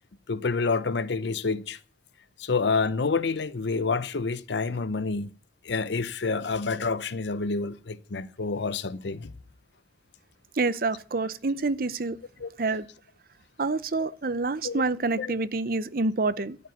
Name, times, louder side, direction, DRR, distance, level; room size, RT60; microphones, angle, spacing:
voice 1, 0.3-1.8 2.4-5.3 5.6-9.3 12.4-12.5 14.6-14.8 15.2-15.3, left 4 dB, 75° left, 0.7 m, -28 dB
voice 2, 10.6-12.2 12.6-12.9 13.6-16.6, right 3 dB, 50° right, 0.7 m, -27 dB
13.0 x 5.5 x 9.1 m
head